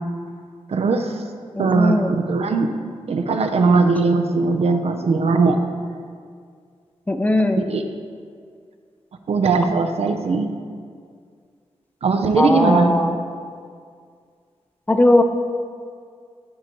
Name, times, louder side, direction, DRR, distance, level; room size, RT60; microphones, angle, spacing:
voice 1, 0.7-1.2 1.6-2.7 3.1-5.6 7.7-7.8 9.3-10.5 12.0-12.9, right 4 dB, 65° right, 6 dB, 0.6 m, -19 dB
voice 2, 1.5-2.1 7.1-7.6 12.4-13.1 14.9-15.2, left 1 dB, 15° left, 6 dB, 0.4 m, -18 dB
12.0 x 4.5 x 3.0 m, 2.1 s
wide cardioid pair, 170°, 11 cm